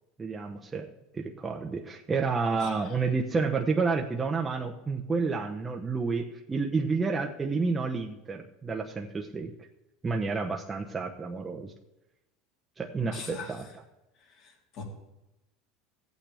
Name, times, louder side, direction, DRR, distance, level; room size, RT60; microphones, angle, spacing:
voice 1, 0.2-0.9 1.1-9.5 10.0-11.7 12.8-13.7, right 4 dB, 15° right, 2 dB, 0.8 m, -30 dB
voice 2, 13.1-13.5 14.4-14.8, left 4 dB, 55° left, 0 dB, 3.2 m, -41 dB
14.5 x 8.7 x 3.4 m, 0.95 s
supercardioid pair, 135°, 0 cm